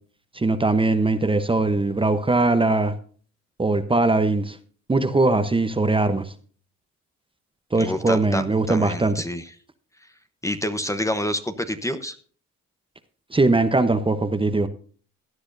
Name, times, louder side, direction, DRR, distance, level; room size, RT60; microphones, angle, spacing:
voice 1, 0.3-2.9 3.6-4.6 4.9-6.3 7.7-9.1 13.3-14.7, right 2 dB, 15° right, 0.9 m, -21 dB
voice 2, 7.8-9.5 10.4-12.2, left 1 dB, 10° left, 0.9 m, -28 dB
17.0 x 9.6 x 2.7 m
cardioid pair, 90°, 30 cm